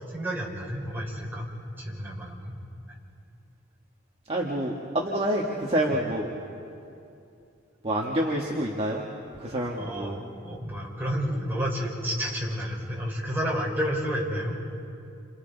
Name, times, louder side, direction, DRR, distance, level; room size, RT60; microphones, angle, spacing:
voice 1, 0.1-1.5 1.8-2.5 9.8-14.5, equal, 10° right, -4 dB, 4.6 m, -30 dB
voice 2, 4.3-6.3 7.8-9.0 9.4-10.2, right 1 dB, 30° right, -2 dB, 1.6 m, -27 dB
30.0 x 27.5 x 4.0 m, 2.6 s
head